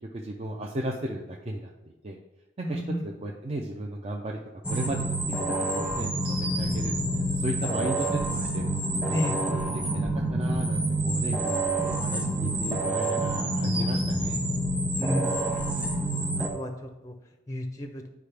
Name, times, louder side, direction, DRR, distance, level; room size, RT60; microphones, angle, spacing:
voice 1, 0.1-2.2 2.7-4.4 4.7-5.1 5.7-8.1 8.5-8.6 9.0-14.4, right 1 dB, 30° right, 0 dB, 0.5 m, -35 dB
voice 2, 2.6-3.0 9.1-9.4 15.0-16.0 16.5-16.7 17.0-17.1 17.5-18.0, equal, 15° left, 5 dB, 0.5 m, -31 dB
sound 1, 4.6-16.5, right 1 dB, 10° right, 1.1 m, -28 dB
10.0 x 4.7 x 3.4 m, 0.97 s
head